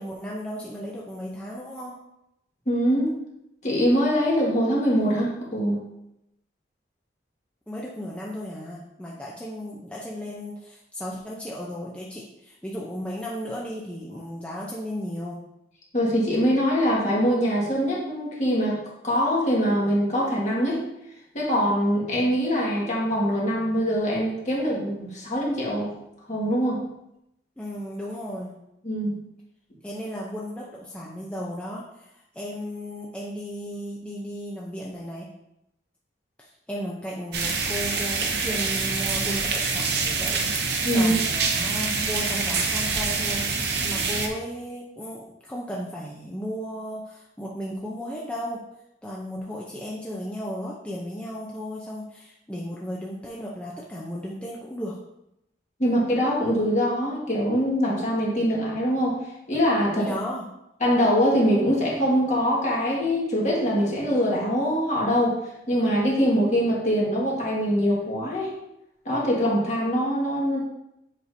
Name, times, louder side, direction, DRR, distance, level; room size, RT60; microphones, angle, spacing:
voice 1, 0.0-2.0 7.7-15.4 27.6-28.6 29.8-35.3 36.4-48.6 49.0-55.0 60.0-60.5, equal, 5° left, -5 dB, 0.6 m, -35 dB
voice 2, 2.7-3.2 3.6-5.8 15.9-18.8 19.0-20.8 21.3-25.9 26.3-26.8 28.8-29.2 40.8-41.1 55.8-59.2 59.5-60.1 60.8-65.4 65.7-68.5 69.1-70.6, equal, 40° left, -5 dB, 1.8 m, -23 dB
sound 1, 37.3-44.3, right 4 dB, 65° right, 0.8 m, -26 dB
7.5 x 4.9 x 2.7 m, 0.85 s
head